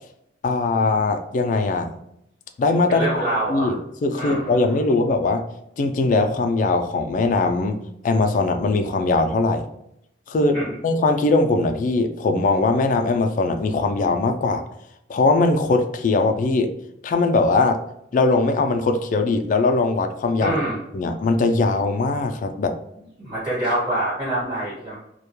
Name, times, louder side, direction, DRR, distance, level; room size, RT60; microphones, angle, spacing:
voice 1, 0.4-1.9 2.6-3.2 3.5-5.4 5.8-7.8 8.0-9.7 10.3-14.6 15.1-16.7 17.0-17.8 18.1-20.6 20.9-22.7, left 3 dB, 45° left, 7 dB, 0.3 m, -20 dB
voice 2, 2.9-3.7 4.1-4.6 10.5-10.7 20.4-20.8 23.2-24.9, right 1 dB, 20° right, -9 dB, 1.1 m, -25 dB
2.2 x 2.1 x 2.9 m, 0.79 s
head